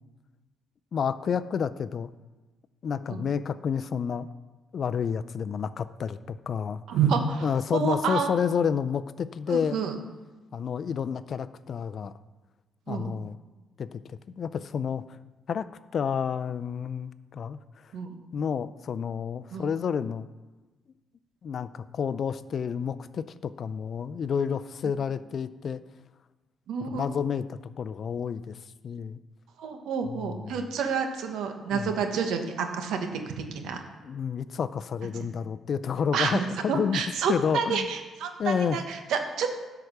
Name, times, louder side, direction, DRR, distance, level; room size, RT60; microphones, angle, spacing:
voice 1, 0.9-2.1 2.8-4.3 4.7-6.8 7.4-9.8 10.5-12.1 12.9-13.4 13.8-15.0 15.5-15.7 15.9-17.8 18.3-20.3 21.4-25.8 26.9-28.6 28.8-29.2 30.1-30.6 31.7-31.9 34.0-37.0 37.3-37.9 38.4-38.8, left 7 dB, 55° left, 14 dB, 0.4 m, -30 dB
voice 2, 6.9-8.3 9.5-9.9 12.9-13.1 17.9-18.1 19.5-19.6 26.7-27.2 29.6-33.8 36.1-39.5, right 6 dB, 80° right, 5 dB, 1.2 m, -29 dB
10.5 x 4.8 x 6.6 m, 1.2 s
cardioid pair, 90°, 0 cm